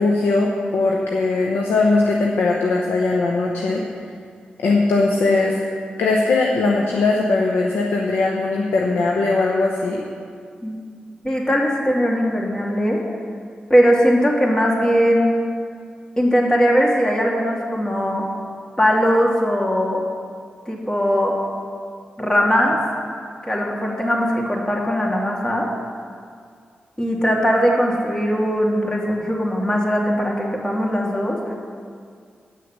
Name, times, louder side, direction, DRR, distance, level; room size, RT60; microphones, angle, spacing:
voice 1, 0.0-3.8 4.6-5.6 6.0-10.0, left 3 dB, 85° left, -1 dB, 0.8 m, -19 dB
voice 2, 11.2-13.0 13.7-15.3 16.2-18.2 18.8-20.0 20.7-21.4 22.2-22.8 23.4-25.7 27.0-31.4, equal, 20° left, -1 dB, 2.3 m, -19 dB
9.5 x 6.4 x 7.3 m, 2.1 s
supercardioid pair, 45°, 4 cm